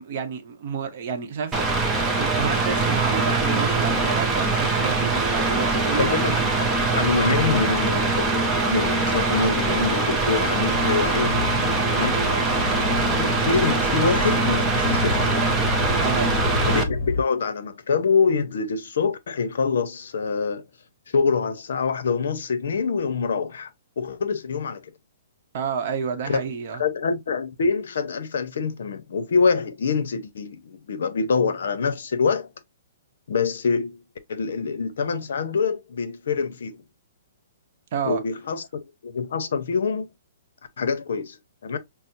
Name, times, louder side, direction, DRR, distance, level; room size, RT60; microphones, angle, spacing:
voice 1, 0.0-1.7 2.2-6.4 12.0-12.5 16.0-16.4 25.5-26.8 37.9-38.2, right 6 dB, 40° right, 0.7 m, -30 dB
Mechanical fan, 1.5-16.8, right 3 dB, 10° right, 0.5 m, -23 dB
voice 2, 6.0-6.3 6.6-11.5 11.9-12.2 12.6-12.7 13.2-15.3 16.6-20.6 21.1-23.7 24.0-24.8 26.3-26.4 26.8-32.5 33.3-34.0 34.3-36.8 38.0-40.1 40.8-41.4 41.6-41.8, left 5 dB, 70° left, 0.7 m, -25 dB
sound 1, 10.7-17.2, left 3 dB, 50° left, 1.0 m, -30 dB
5.7 x 2.0 x 2.5 m
hypercardioid pair, 170°, 0 cm